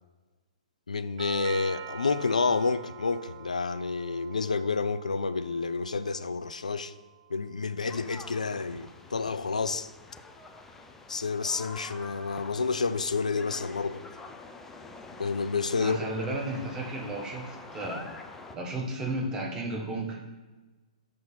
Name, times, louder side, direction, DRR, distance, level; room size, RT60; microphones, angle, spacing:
voice 1, 0.9-6.9 7.3-9.9 11.1-14.0 15.2-16.4, left 4 dB, 80° left, 0.3 m, -29 dB
Doorbell, 1.2-9.2, right 9 dB, 45° right, 0.5 m, -46 dB
sound 1, 7.8-18.6, left 3 dB, 10° left, 0.4 m, -46 dB
voice 2, 15.8-18.0 18.5-20.2, right 2 dB, 20° right, 1.1 m, -33 dB
5.8 x 3.8 x 5.6 m
figure-of-eight pair, 120°, 4 cm